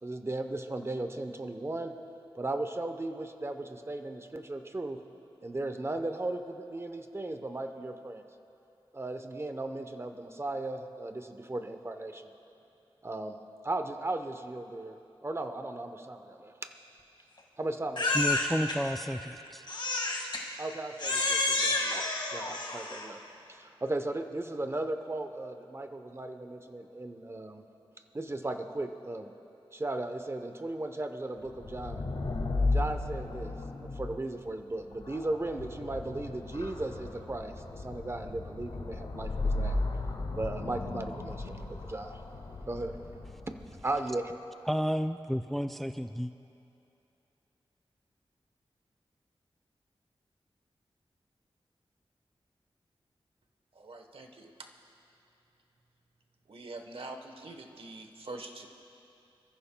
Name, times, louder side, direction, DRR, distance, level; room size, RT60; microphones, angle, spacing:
voice 1, 0.0-2.0 2.3-5.0 5.4-8.2 8.9-12.3 13.0-13.4 13.6-15.0 15.2-16.7 17.6-18.2 20.6-23.2 23.5-27.6 28.1-29.3 29.7-32.1 32.7-33.5 33.8-40.0 40.4-42.2 42.7-43.0 43.5-43.6 43.8-44.3, right 2 dB, 25° right, 7 dB, 0.8 m, -36 dB
Crying sobbing, 18.0-18.8 19.7-20.4 21.0-23.1, left 2 dB, 55° left, 1.8 m, -30 dB
voice 2, 18.1-19.6 44.7-46.3, equal, ahead, 9 dB, 0.4 m, -31 dB
sound 1, 31.5-44.0, left 2 dB, 80° left, 1.7 m, -35 dB
voice 3, 53.7-54.5 56.5-58.7, right 2 dB, 70° right, 4 dB, 1.1 m, -44 dB
27.5 x 14.5 x 2.3 m, 2.8 s
wide cardioid pair, 75°, 10 cm